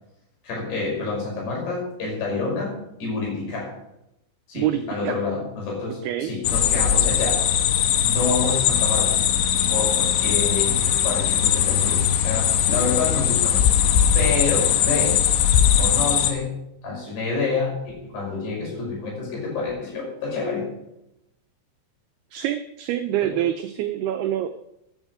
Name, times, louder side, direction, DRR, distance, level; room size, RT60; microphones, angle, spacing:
voice 1, 0.4-3.8 4.5-7.5 8.0-9.2 9.7-15.2 15.7-16.5 16.8-20.7 23.2-23.3, left 3 dB, 60° left, -2 dB, 7.7 m, -28 dB
voice 2, 4.6-5.2 6.0-6.3 22.3-24.5, right 12 dB, 85° right, 8 dB, 2.3 m, -26 dB
sound 1, 6.4-16.3, left 9 dB, 85° left, 3.5 m, -20 dB
14.5 x 10.5 x 4.9 m, 0.83 s
omnidirectional pair, 5.3 m